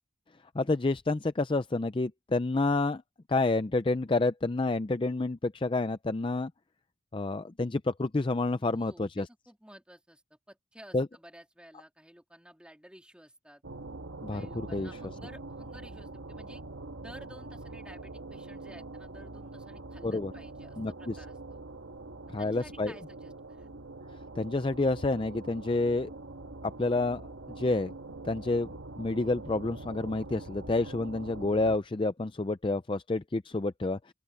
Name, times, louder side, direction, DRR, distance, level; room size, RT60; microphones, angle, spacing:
voice 1, 0.5-3.0 3.3-6.5 7.1-9.3 10.9-11.1 14.2-14.9 20.0-20.3 20.8-21.1 22.3-22.9 24.4-26.1 26.6-27.2 27.6-27.9 28.2-28.7 29.0-34.1, left 2 dB, 25° left, 0.4 m, -29 dB
voice 2, 8.7-13.6 14.3-16.6 17.0-21.6 22.4-23.7, right 1 dB, 5° right, 3.2 m, -53 dB
sound 1, 13.6-31.8, right 2 dB, 75° right, 1.5 m, -44 dB
open air
head